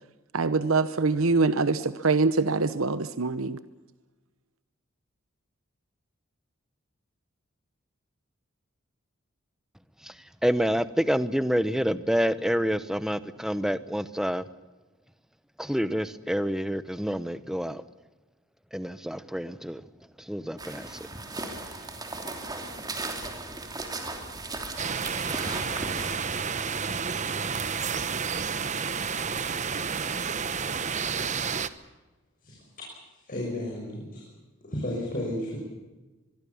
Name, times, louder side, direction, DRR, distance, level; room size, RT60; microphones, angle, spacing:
voice 1, 0.3-3.6, right 3 dB, 85° right, 13 dB, 0.9 m, -24 dB
voice 2, 10.4-14.4 15.6-17.8 18.7-19.8 20.3-21.0, equal, ahead, 14 dB, 0.9 m, -28 dB
sound 1, 20.6-26.2, right 2 dB, 20° right, 3.0 m, -36 dB
sound 2, 24.8-31.7, right 6 dB, 35° right, 1.1 m, -30 dB
voice 3, 32.4-34.2 34.6-35.6, left 1 dB, 45° left, -2 dB, 6.1 m, -34 dB
24.0 x 22.5 x 7.1 m, 1.1 s
head